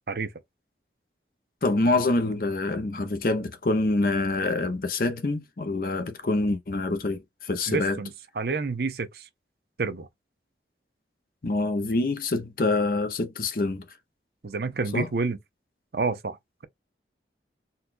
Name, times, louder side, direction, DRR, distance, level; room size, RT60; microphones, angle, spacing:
voice 1, 1.6-8.0 11.4-13.8 14.9-15.1, left 2 dB, 50° left, 0.6 m, -26 dB
voice 2, 7.7-9.3 9.8-10.1 14.4-15.4 15.9-16.4, right 4 dB, 60° right, 0.6 m, -29 dB
4.0 x 2.3 x 2.5 m
head